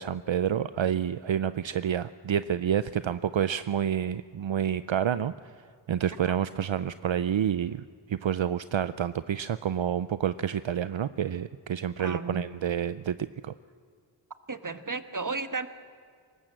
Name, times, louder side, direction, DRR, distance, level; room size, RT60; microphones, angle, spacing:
voice 1, 0.0-5.3 5.9-13.5, right 9 dB, 70° right, 14 dB, 0.6 m, -29 dB
voice 2, 12.0-12.4 14.5-15.7, right 4 dB, 40° right, 10 dB, 1.4 m, -33 dB
23.5 x 20.0 x 7.6 m, 2.1 s
wide cardioid pair, 45°, 47 cm